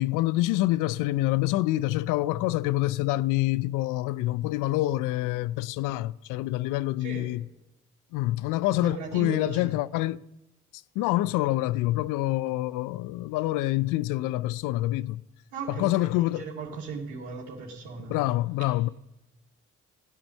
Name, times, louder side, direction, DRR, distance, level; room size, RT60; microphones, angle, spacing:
voice 1, 0.0-7.5 8.1-10.2 10.7-15.2 15.7-16.5 18.1-18.9, left 17 dB, 70° left, 0.5 m, -26 dB
voice 2, 7.0-7.3 8.8-9.7 15.5-18.2, right 5 dB, 85° right, 2.4 m, -37 dB
15.5 x 8.8 x 6.4 m
hypercardioid pair, 50°, 33 cm